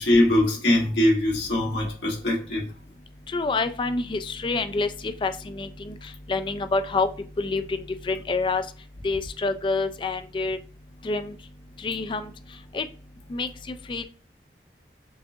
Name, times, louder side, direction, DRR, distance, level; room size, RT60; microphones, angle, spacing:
voice 1, 0.0-2.6, left 1 dB, 80° left, 1.6 m, -22 dB
voice 2, 3.3-6.0 6.3-7.1 7.4-8.6 9.0-10.6 11.0-11.4 11.8-12.3 12.7-12.9 13.3-14.0, left 3 dB, 30° left, 0.3 m, -27 dB
6.8 x 2.5 x 2.7 m
head